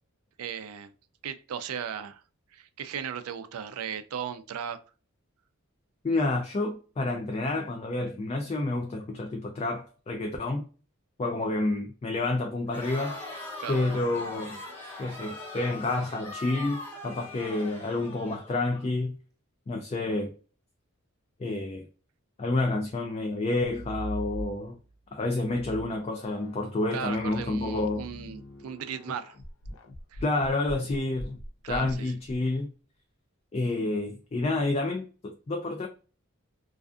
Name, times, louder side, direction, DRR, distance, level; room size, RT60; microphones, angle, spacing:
voice 1, 0.4-0.9 1.2-2.2 2.5-4.8 13.6-13.8 26.9-29.4 30.1-30.2 31.6-32.1, right 8 dB, 90° right, 0.4 m, -36 dB
voice 2, 6.0-10.7 11.2-13.2 13.7-14.6 15.0-19.1 19.7-20.3 21.4-21.8 22.4-24.8 25.1-28.1 30.2-31.4 31.7-32.7 33.5-35.9, left 2 dB, 30° left, 0.3 m, -29 dB
Crowd, 12.7-18.8, left 2 dB, 10° left, 0.7 m, -41 dB
sound 1, 23.5-24.9 25.4-32.4, equal, 80° left, 0.5 m, -42 dB
2.4 x 2.4 x 2.3 m
head